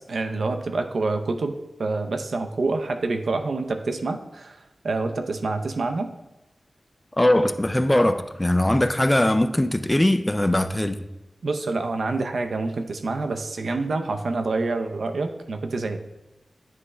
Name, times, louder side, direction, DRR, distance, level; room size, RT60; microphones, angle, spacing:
voice 1, 0.1-1.5 1.8-4.6 4.8-6.1 11.4-16.0, right 3 dB, 80° right, 0.5 m, -27 dB
voice 2, 7.2-11.0, left 1 dB, 15° left, 0.3 m, -21 dB
9.5 x 3.3 x 3.3 m
wide cardioid pair, 100°, 0 cm